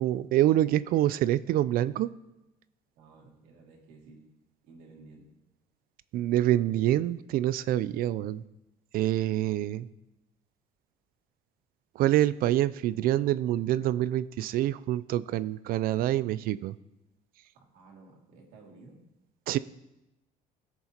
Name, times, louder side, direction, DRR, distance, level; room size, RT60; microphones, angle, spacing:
voice 1, 0.0-2.1 6.1-8.4 8.9-9.9 12.0-16.8 19.5-19.6, right 13 dB, 65° right, 17 dB, 0.4 m, -26 dB
voice 2, 3.0-4.2 4.6-5.3 17.5-19.0, right 3 dB, 85° right, -2 dB, 2.4 m, -53 dB
17.5 x 7.0 x 2.9 m, 0.95 s
cardioid pair, 120°, 16 cm